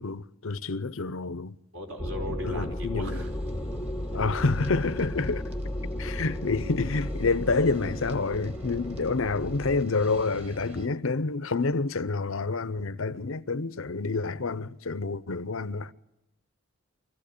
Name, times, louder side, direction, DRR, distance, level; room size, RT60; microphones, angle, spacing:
voice 1, 0.0-1.6 2.3-3.2 4.1-5.4 6.0-15.9, left 3 dB, 60° left, 0.8 m, -28 dB
voice 2, 1.7-3.3, left 1 dB, 65° right, 5.3 m, -37 dB
sound 1, 2.0-9.8, left 1 dB, 10° left, 0.8 m, -34 dB
sound 2, 3.1-10.9, equal, 30° right, 2.0 m, -46 dB
24.5 x 16.0 x 8.6 m
head